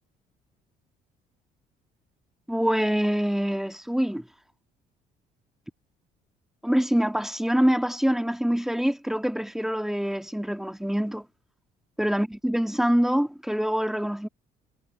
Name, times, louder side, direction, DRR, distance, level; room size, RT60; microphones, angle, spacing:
voice 1, 2.5-4.3 6.6-11.3 12.0-14.3, equal, ahead, 1.8 m, -25 dB
cardioid pair, 110°, 17 cm